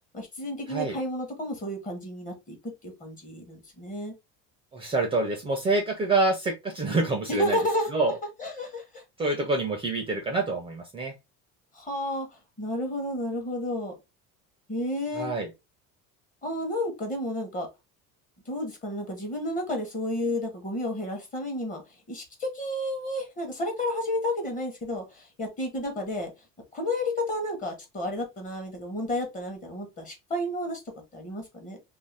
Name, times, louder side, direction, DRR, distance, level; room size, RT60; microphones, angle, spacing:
voice 1, 0.1-2.6 2.8-4.1 7.3-7.9 8.4-9.0 11.7-12.3 12.6-13.9 14.7-15.3 16.4-17.7 18.5-21.8 22.1-26.3 26.7-30.8 31.1-31.8, left 1 dB, 25° left, 0.9 m, -31 dB
voice 2, 4.7-7.6 7.9-8.1 9.2-11.1 15.1-15.5, right 3 dB, 15° right, 0.5 m, -26 dB
2.6 x 2.1 x 3.2 m
cardioid pair, 145°, 33 cm